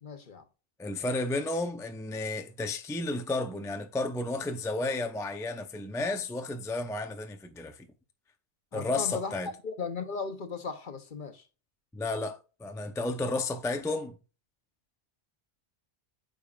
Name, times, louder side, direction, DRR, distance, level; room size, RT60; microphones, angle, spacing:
voice 1, 0.0-0.4 8.7-11.4, left 5 dB, 50° left, 0.9 m, -37 dB
voice 2, 0.8-7.9 8.7-9.5 11.9-14.2, left 2 dB, 5° left, 0.4 m, -32 dB
8.5 x 5.2 x 2.3 m
omnidirectional pair, 1.1 m